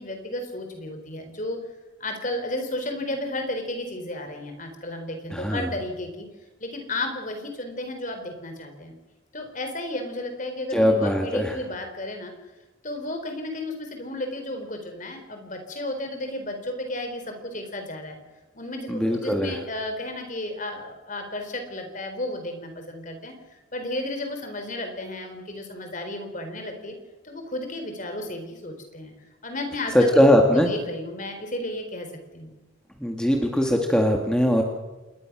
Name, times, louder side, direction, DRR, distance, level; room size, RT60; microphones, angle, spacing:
voice 1, 0.0-1.6 2.0-6.3 6.6-9.0 9.3-12.3 12.8-18.2 18.5-23.3 23.7-27.0 27.2-29.1 29.4-30.3 30.5-32.1 32.3-32.6, left 1 dB, 40° left, 6 dB, 4.1 m, -33 dB
voice 2, 5.3-5.7 10.7-11.6 18.9-19.6 29.9-30.7 33.0-34.6, equal, 5° left, 2 dB, 2.0 m, -20 dB
27.5 x 21.0 x 6.2 m, 1.1 s
head